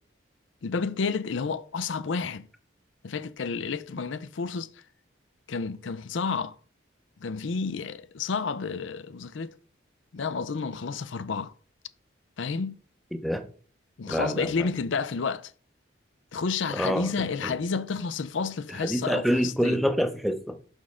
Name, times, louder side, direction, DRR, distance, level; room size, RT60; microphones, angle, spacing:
voice 1, 0.6-2.5 3.0-4.8 5.5-6.6 7.2-9.5 10.1-11.5 12.4-12.8 14.0-15.5 16.3-19.8, left 5 dB, 70° left, 0.5 m, -30 dB
voice 2, 13.1-13.4 14.1-14.5 16.7-17.1 18.8-20.6, equal, ahead, 0.6 m, -26 dB
6.3 x 6.3 x 3.6 m
head